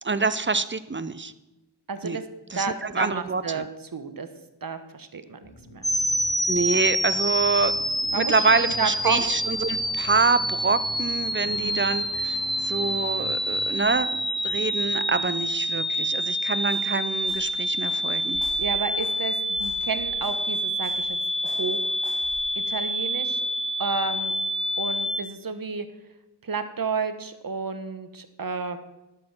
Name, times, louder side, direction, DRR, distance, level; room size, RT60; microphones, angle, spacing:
voice 1, 0.0-1.3 2.0-2.2 2.5-3.7 6.5-7.7 8.0-14.2 14.4-18.4, right 4 dB, 25° right, 14 dB, 0.8 m, -26 dB
voice 2, 1.9-2.2 2.5-3.7 3.9-4.3 4.6-5.9 8.1-9.3 11.4-11.8 18.4-21.2 21.4-21.9 22.6-23.4 23.8-24.3 24.8-25.9 26.4-28.8, right 5 dB, 50° right, 9 dB, 1.3 m, -31 dB
sound 1, 5.4-16.2, left 1 dB, 50° left, 3.0 m, -46 dB
sound 2, 5.8-25.2, equal, ahead, 0.8 m, -27 dB
sound 3, 16.5-23.0, left 2 dB, 80° left, 2.8 m, -49 dB
11.0 x 7.8 x 6.2 m, 1.0 s
cardioid pair, 45°, 43 cm